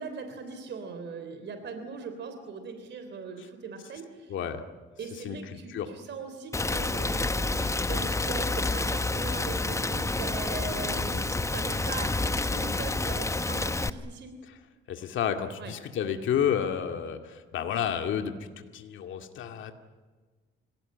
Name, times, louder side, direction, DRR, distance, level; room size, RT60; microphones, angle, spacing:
voice 1, 0.0-4.3 5.0-14.4 15.6-15.7, right 4 dB, 60° right, 7 dB, 3.3 m, -40 dB
voice 2, 4.3-4.6 5.2-5.9 14.9-19.7, left 8 dB, 75° left, 6 dB, 2.2 m, -31 dB
Rain, 6.5-13.9, left 2 dB, 15° left, 0.9 m, -29 dB
26.0 x 17.5 x 9.8 m, 1.4 s
cardioid pair, 90°, 20 cm